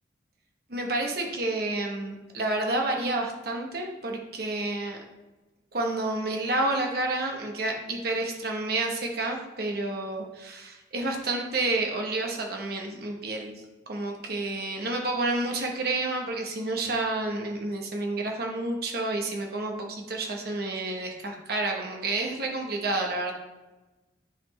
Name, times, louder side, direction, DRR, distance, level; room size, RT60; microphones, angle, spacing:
voice 1, 0.7-5.0 5.7-13.5 13.9-23.3, right 2 dB, 55° right, 1 dB, 0.9 m, -30 dB
10.0 x 4.2 x 3.1 m, 1.1 s
head